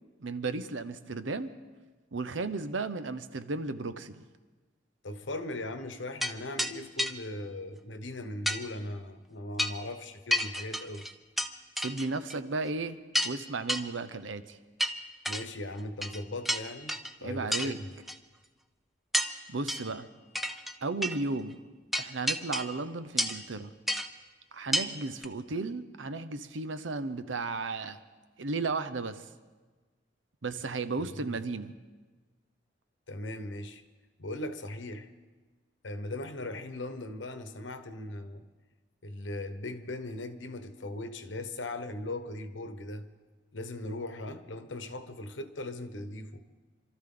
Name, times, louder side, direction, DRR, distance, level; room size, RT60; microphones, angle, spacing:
voice 1, 0.2-1.6 2.1-4.3 11.8-13.0 13.2-14.6 17.2-17.8 19.5-20.1 20.8-21.6 22.0-23.7 24.5-28.0 28.4-29.3 30.4-31.7, right 3 dB, 90° right, 0.8 m, -34 dB
voice 2, 5.0-11.0 15.3-17.9 31.0-31.4 33.1-33.8 34.2-35.1 35.8-38.4 39.0-43.1 43.5-46.4, left 2 dB, 80° left, 1.2 m, -39 dB
sound 1, 6.2-6.3 6.6-6.7 7.0-7.1 8.5-8.6 9.6-9.8 10.3-11.5 11.8-12.4 12.7-12.8 13.1-13.4 13.7-13.8 14.8-15.4 16.0-16.2 16.5-17.1 17.5-17.7 18.1-18.2 19.1-19.3 19.7-19.9 20.4-20.7 21.0-21.2 21.9-22.8 23.2-23.5 23.9-24.1 24.7-24.9 25.2-25.3, equal, ahead, 0.6 m, -30 dB
27.0 x 13.5 x 3.9 m
head